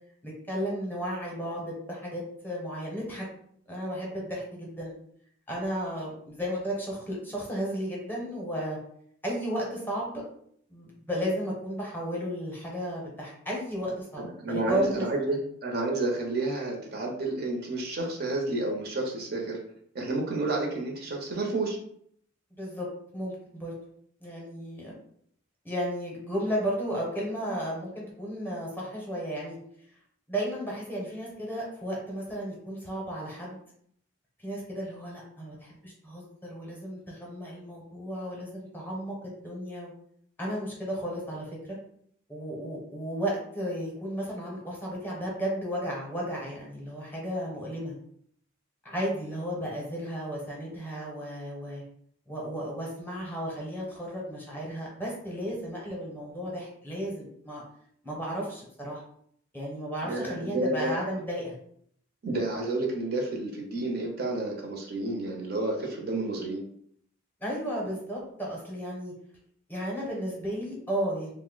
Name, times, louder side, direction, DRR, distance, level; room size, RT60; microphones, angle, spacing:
voice 1, 0.2-3.3 3.7-5.0 5.5-8.8 9.2-10.2 10.7-15.4 22.6-22.9 23.1-23.7 24.2-24.9 25.6-29.6 30.3-33.6 34.4-39.1 39.4-39.9 40.4-41.8 42.3-47.9 48.8-51.8 52.3-57.6 58.0-59.0 59.5-61.5 67.4-69.1 69.7-71.3, equal, 10° left, -4 dB, 0.7 m, -34 dB
voice 2, 14.2-19.6 19.9-21.8 60.0-60.9 62.2-66.6, right 2 dB, 50° right, 0 dB, 0.6 m, -30 dB
2.6 x 2.0 x 3.8 m, 0.66 s
head